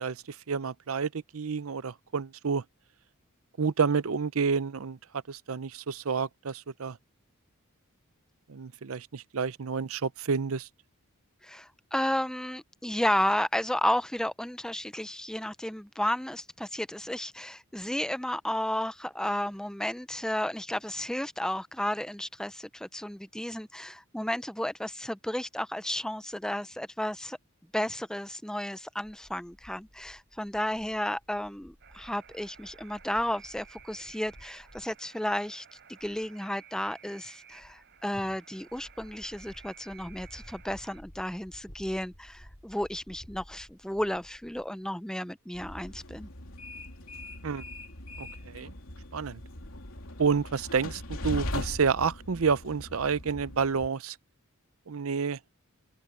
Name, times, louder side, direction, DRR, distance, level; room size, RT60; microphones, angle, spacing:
voice 1, 0.0-2.6 3.6-5.0 5.3-7.0 8.5-10.7 47.4-47.6 48.2-48.7 49.1-49.4 50.2-54.2 54.9-55.4, right 5 dB, 75° right, 0.6 m, -29 dB
voice 2, 11.4-27.4 27.7-46.3, left 1 dB, 5° left, 0.5 m, -33 dB
sound 1, 29.0-35.0 35.2-35.5 35.8-36.3 37.5-38.3 38.6-44.8, equal, 30° left, 3.6 m, -54 dB
Alarm, 31.8-41.0, right 8 dB, 55° right, 4.5 m, -55 dB
Train, 45.5-53.9, left 1 dB, 70° left, 3.1 m, -40 dB
head